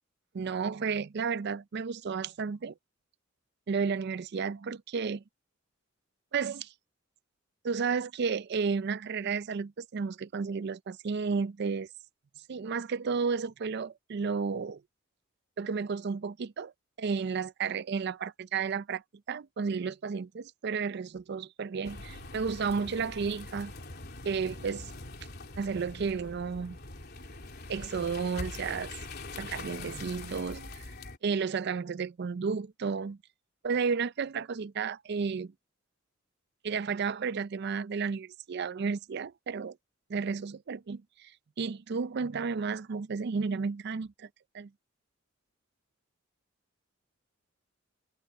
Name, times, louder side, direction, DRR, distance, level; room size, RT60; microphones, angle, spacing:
voice 1, 0.3-2.7 3.7-5.2 6.3-6.7 7.6-11.9 12.5-14.8 15.6-16.7 17.0-19.0 19.3-23.7 24.2-24.9 25.6-26.8 27.7-28.9 29.4-30.9 31.2-33.2 33.6-35.5 36.6-39.8 40.1-41.3 41.6-44.3 44.5-44.7, right 5 dB, 55° right, 0.4 m, -32 dB
sound 1, 21.8-31.2, left 2 dB, 55° left, 3.4 m, -43 dB
head